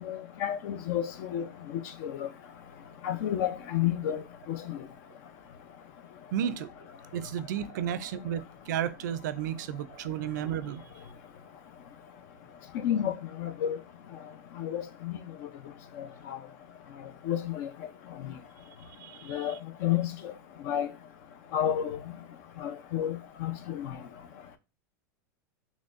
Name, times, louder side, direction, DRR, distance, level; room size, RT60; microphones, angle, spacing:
voice 1, 0.0-1.5 2.0-2.3 3.0-4.2 4.5-4.8 12.7-13.8 14.6-15.2 16.0-16.4 17.3-17.7 18.2-18.3 19.3-19.6 19.8-20.3 20.7-20.9 21.5-22.0 22.6-23.9, left 10 dB, 60° left, 0.5 m, -31 dB
voice 2, 6.3-6.7 7.1-10.8 19.0-19.5, right 9 dB, 80° right, 0.4 m, -33 dB
4.0 x 3.0 x 2.4 m
supercardioid pair, 140°, 10 cm